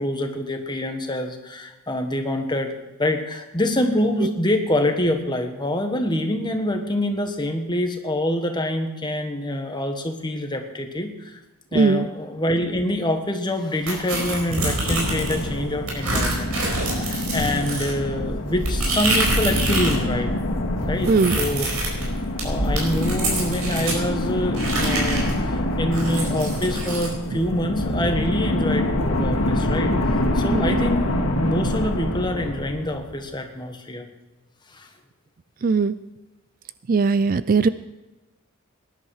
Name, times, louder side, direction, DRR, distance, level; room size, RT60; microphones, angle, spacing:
voice 1, 0.0-2.7 3.0-11.4 11.7-20.3 20.9-21.7 22.4-34.1 34.7-34.9, left 1 dB, 20° left, 5 dB, 1.4 m, -26 dB
voice 2, 11.7-12.1 21.1-21.4 30.5-30.9 35.6-36.0 36.9-37.7, right 4 dB, 40° right, 15 dB, 0.4 m, -19 dB
sound 1, 13.9-15.5 15.9-20.0 20.3-24.0 24.5-27.1, right 1 dB, 80° right, 4.5 m, -26 dB
sound 2, 14.8-33.3, left 1 dB, 70° left, 2.2 m, -26 dB
19.0 x 10.5 x 4.8 m, 1.1 s
head